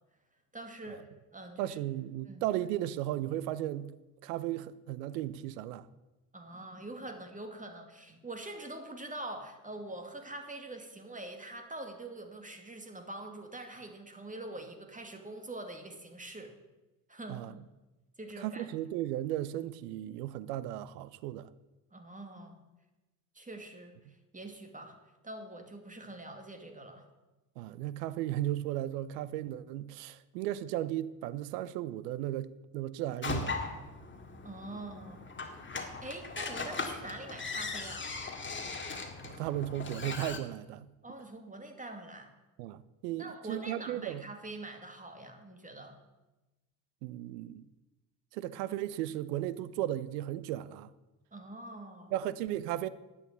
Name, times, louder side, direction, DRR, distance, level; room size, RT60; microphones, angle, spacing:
voice 1, 0.5-1.8 2.2-2.5 6.3-16.6 17.1-17.5 18.2-18.7 21.9-22.6 23.3-27.1 34.4-35.3 36.0-38.1 41.0-42.3 43.2-46.0 51.3-52.1, right 2 dB, 15° right, 2.3 m, -44 dB
voice 2, 1.6-3.9 4.2-5.9 17.3-17.5 18.4-21.5 27.6-33.6 39.2-40.9 42.6-44.2 47.0-47.7 48.3-50.9 52.1-52.9, right 13 dB, 80° right, 0.8 m, -35 dB
sound 1, 33.2-40.4, left 4 dB, 25° left, 2.1 m, -39 dB
11.0 x 8.8 x 8.0 m
hypercardioid pair, 65°, 47 cm